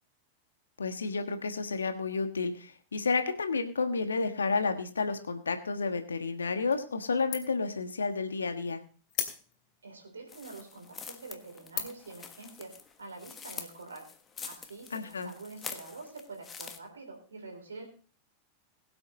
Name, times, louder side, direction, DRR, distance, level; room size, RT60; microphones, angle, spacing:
voice 1, 0.8-8.8 14.9-15.3, left 4 dB, 80° left, 8 dB, 1.4 m, -31 dB
sound 1, 6.7-7.1 7.3-7.7 8.1-8.2 9.1-9.8 10.5-10.6 11.1-11.3 11.7-12.2, left 9 dB, 45° left, 2.8 m, -36 dB
voice 2, 9.8-14.1 14.4-17.9, right 3 dB, 80° right, 4 dB, 3.5 m, -46 dB
sound 2, 10.3-16.8, left 6 dB, 25° left, 1.4 m, -46 dB
21.5 x 7.8 x 3.0 m, 0.38 s
figure-of-eight pair, 90°, 0 cm